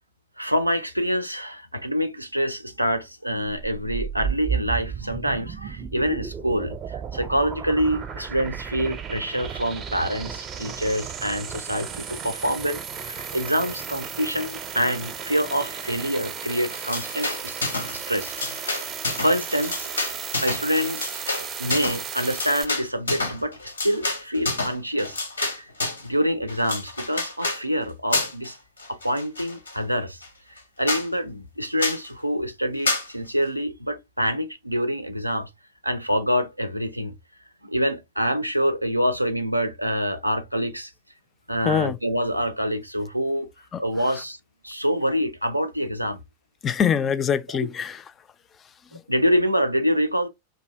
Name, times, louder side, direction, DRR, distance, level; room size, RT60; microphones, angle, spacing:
voice 1, 0.4-17.6 17.9-18.3 18.6-18.9 19.2-19.9 20.4-21.0 21.6-25.2 25.5-25.7 26.0-28.6 28.9-30.2 30.5-35.5 35.8-37.2 37.6-40.9 41.5-43.5 43.8-44.4 44.6-46.2 49.1-50.3, equal, 90° right, 0.4 m, -26 dB
sound 1, 3.5-22.7, right 7 dB, 30° right, 0.6 m, -34 dB
sound 2, 16.7-18.0 18.2-26.1 26.5-27.6 28.1-28.5 28.8-29.8 30.2-30.3 30.6-30.7 30.9-31.1 31.8-32.1 32.9-33.1, left 3 dB, 75° left, 0.7 m, -29 dB
voice 2, 41.6-42.0 43.7-43.8 44.1-44.2 46.6-48.0 48.9-49.0, left 7 dB, 25° left, 0.3 m, -24 dB
2.6 x 2.6 x 3.3 m
figure-of-eight pair, 90°, 0 cm